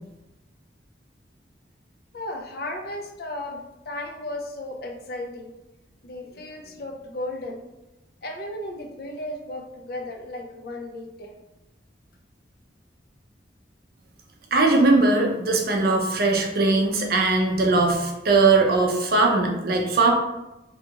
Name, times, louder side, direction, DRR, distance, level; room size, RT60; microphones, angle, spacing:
voice 1, 2.1-5.5 6.0-7.7 8.2-11.4, left 1 dB, 55° left, 3 dB, 0.4 m, -35 dB
voice 2, 14.5-20.1, right 3 dB, 55° right, 1 dB, 0.5 m, -20 dB
2.8 x 2.3 x 2.8 m, 0.97 s
head